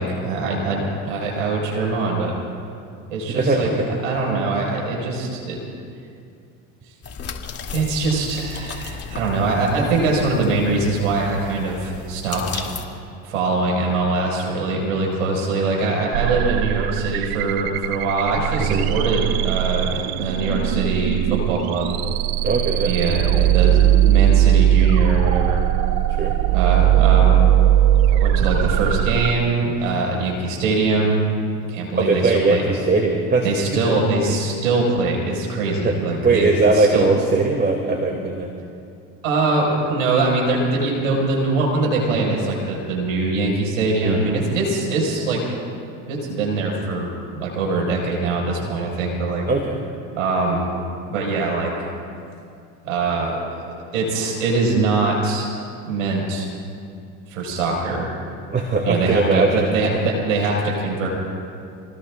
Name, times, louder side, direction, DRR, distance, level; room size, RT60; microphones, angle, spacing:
voice 1, 0.0-2.3 3.1-3.7 4.0-5.6 7.7-12.8 13.2-22.0 22.8-25.6 26.5-27.4 28.1-31.2 31.7-32.6 33.4-37.1 39.2-45.4 46.1-49.4 50.1-50.8 51.1-51.7 52.8-55.5 55.9-56.5 57.3-58.1 58.8-61.1, right 3 dB, 90° right, -2 dB, 5.3 m, -22 dB
voice 2, 3.3-3.9 9.8-9.9 18.5-18.9 22.4-22.9 26.2-26.4 32.0-33.5 33.8-34.0 35.8-35.9 36.2-38.5 44.0-44.2 49.5-49.8 58.5-59.7, right 3 dB, 25° right, 1 dB, 2.5 m, -20 dB
sound 1, 7.0-12.8, left 5 dB, 40° left, 2.7 m, -35 dB
sound 2, 16.1-29.3, right 12 dB, 70° right, 0.8 m, -19 dB
28.5 x 19.5 x 2.5 m, 2.5 s
hypercardioid pair, 75°, 38 cm